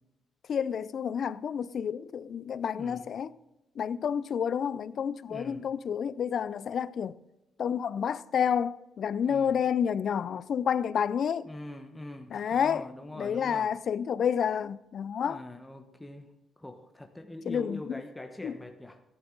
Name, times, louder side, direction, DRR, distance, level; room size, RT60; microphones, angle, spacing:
voice 1, 0.5-3.3 3.8-7.1 7.6-11.5 12.3-12.9 13.2-15.4 17.5-17.9 18.4-18.6, left 7 dB, 60° left, 0.4 m, -29 dB
voice 2, 2.8-3.2 5.3-5.7 9.2-9.7 11.4-13.7 15.2-16.3 16.6-19.0, left 1 dB, 10° left, 1.0 m, -43 dB
14.5 x 11.0 x 3.8 m
cardioid pair, 90°, 0 cm